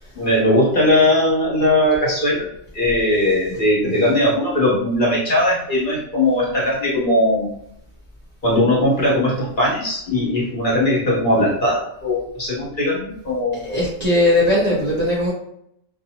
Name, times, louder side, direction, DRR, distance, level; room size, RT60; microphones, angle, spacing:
voice 1, 0.1-2.5 2.7-7.5 8.4-13.7, left 1 dB, 45° left, -6 dB, 1.1 m, -19 dB
voice 2, 13.6-15.3, left 1 dB, 45° right, -6 dB, 0.5 m, -18 dB
2.6 x 2.4 x 2.8 m, 0.72 s
omnidirectional pair, 1.3 m